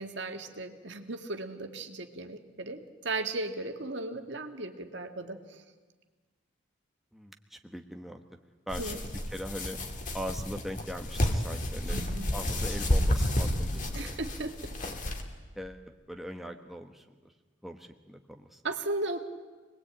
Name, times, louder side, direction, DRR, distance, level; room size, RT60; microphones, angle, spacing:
voice 1, 0.0-5.4 8.8-9.0 11.9-12.3 13.9-14.7 18.6-19.2, right 2 dB, 70° right, 5 dB, 2.0 m, -36 dB
voice 2, 7.1-8.2 8.7-9.8 10.1-12.0 12.3-14.2 14.8-14.9 15.5-17.3 17.6-18.6, equal, ahead, 3 dB, 1.3 m, -41 dB
sound 1, 8.7-15.2, left 1 dB, 40° left, 2.7 m, -31 dB
27.0 x 20.5 x 8.9 m, 1.4 s
head